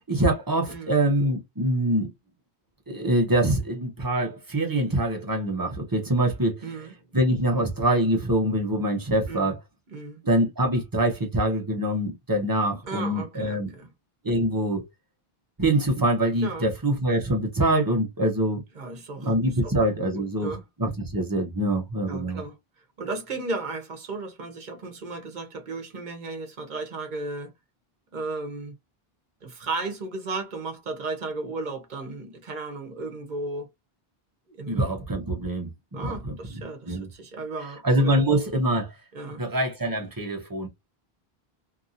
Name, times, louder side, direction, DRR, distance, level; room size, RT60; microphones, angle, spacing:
voice 1, 0.1-2.1 2.9-6.6 7.1-9.6 10.2-13.7 14.2-14.8 15.6-18.6 19.2-20.5 20.8-22.4 34.7-36.4 36.9-37.1 37.8-38.9 39.4-40.7, right 1 dB, 25° right, 0.6 m, -24 dB
voice 2, 6.6-6.9 9.3-9.5 9.9-10.2 12.9-13.9 16.4-16.7 18.7-19.3 19.6-19.7 20.1-20.6 22.1-22.5 23.0-27.5 28.1-28.7 29.4-33.7 34.6-34.9 35.9-38.3 39.1-39.4, right 3 dB, 50° right, 0.9 m, -35 dB
2.8 x 2.6 x 2.5 m
omnidirectional pair, 1.0 m